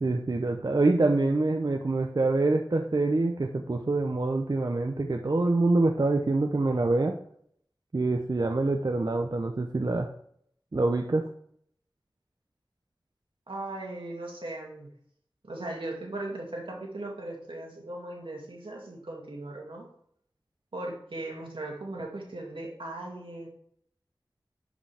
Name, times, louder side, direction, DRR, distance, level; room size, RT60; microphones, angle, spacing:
voice 1, 0.0-7.1 7.9-10.1 10.7-11.2, right 2 dB, 50° right, 3 dB, 0.7 m, -25 dB
voice 2, 13.5-14.9 15.4-19.9 20.7-23.5, right 2 dB, 85° right, -1 dB, 2.3 m, -38 dB
11.0 x 5.1 x 3.4 m, 0.65 s
wide cardioid pair, 55°, 9 cm